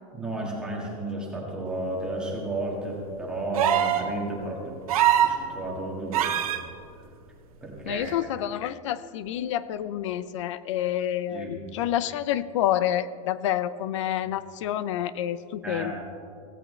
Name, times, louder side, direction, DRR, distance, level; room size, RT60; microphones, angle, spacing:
voice 1, 0.1-4.8 5.2-6.4 7.6-8.3 11.3-11.6 15.6-15.9, right 1 dB, 5° right, -3 dB, 1.8 m, -33 dB
sound 1, 3.5-4.1 4.9-5.4 6.1-6.6 8.1-8.2, right 11 dB, 75° right, 1.4 m, -22 dB
voice 2, 7.9-15.9, left 11 dB, 55° left, 16 dB, 0.6 m, -28 dB
16.5 x 16.5 x 3.3 m, 2.4 s
supercardioid pair, 175°, 19 cm